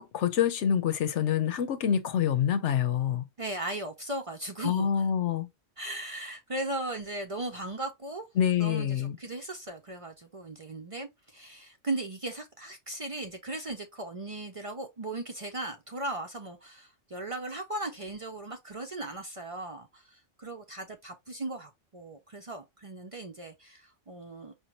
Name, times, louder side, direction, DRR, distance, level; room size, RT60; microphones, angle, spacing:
voice 1, 0.0-3.2 4.6-5.5 8.4-9.2, left 9 dB, 80° left, 1.1 m, -26 dB
voice 2, 3.4-5.0 5.8-8.3 8.6-24.5, right 2 dB, 40° right, 0.5 m, -37 dB
4.9 x 2.7 x 3.0 m
omnidirectional pair, 1.2 m